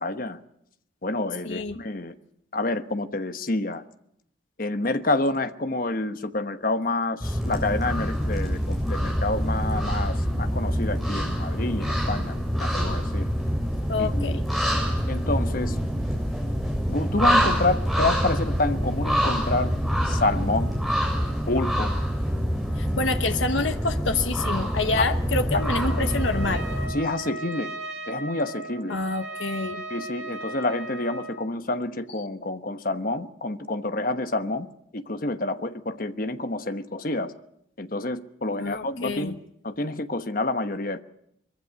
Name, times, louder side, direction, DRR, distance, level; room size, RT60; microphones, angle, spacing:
voice 1, 0.0-0.4 1.0-2.1 2.5-3.8 4.6-13.3 14.0-14.4 15.1-15.8 16.9-19.7 20.0-20.7 21.5-21.9 25.0-25.1 25.5-25.6 26.9-27.7 28.1-29.0 29.9-37.3 37.8-39.4 39.6-41.0, left 2 dB, 45° left, 10 dB, 1.1 m, -28 dB
voice 2, 1.4-1.8 13.9-14.4 22.8-26.6 28.9-29.8 38.6-39.3, left 3 dB, 80° left, 8 dB, 1.1 m, -27 dB
sound 1, 7.2-26.9, equal, ahead, 7.0 m, -26 dB
Trumpet, 25.5-31.4, right 2 dB, 65° right, 4.6 m, -37 dB
23.0 x 15.0 x 9.9 m, 0.75 s
head